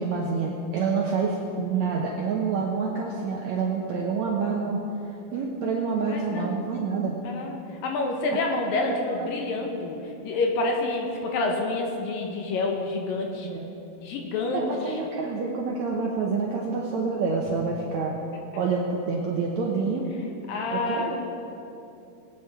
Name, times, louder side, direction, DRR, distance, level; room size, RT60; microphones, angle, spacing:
voice 1, 0.0-4.8 5.3-7.1 8.3-8.4 8.7-9.3 13.2-13.7 14.5-18.1 18.6-20.1 20.7-21.2, right 4 dB, 75° right, -2 dB, 1.7 m, -27 dB
voice 2, 1.8-2.1 6.1-6.5 7.2-10.0 10.2-13.5 14.0-14.9 20.5-21.2, left 3 dB, 70° left, 1 dB, 2.8 m, -28 dB
20.0 x 9.1 x 3.6 m, 2.8 s
omnidirectional pair, 4.3 m